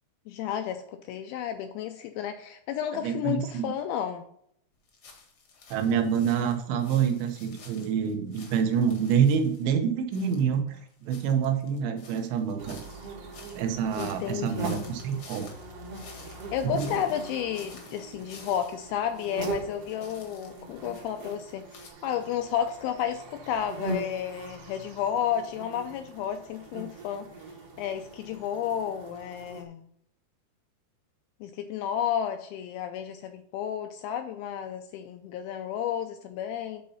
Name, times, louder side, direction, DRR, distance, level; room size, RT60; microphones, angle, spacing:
voice 1, 0.3-4.2 14.0-14.9 16.3-27.3 27.8-29.9 31.4-36.8, left 9 dB, 85° left, 7 dB, 2.2 m, -32 dB
voice 2, 2.9-3.7 5.7-12.8 13.6-15.5 16.7-16.9, right 7 dB, 90° right, 6 dB, 3.2 m, -27 dB
sound 1, 4.9-9.7 10.1-19.4 19.7-21.9, left 4 dB, 65° left, 1.3 m, -52 dB
sound 2, 12.6-29.6, right 3 dB, 75° right, 1.3 m, -41 dB
9.4 x 4.0 x 5.6 m, 0.68 s
omnidirectional pair, 4.9 m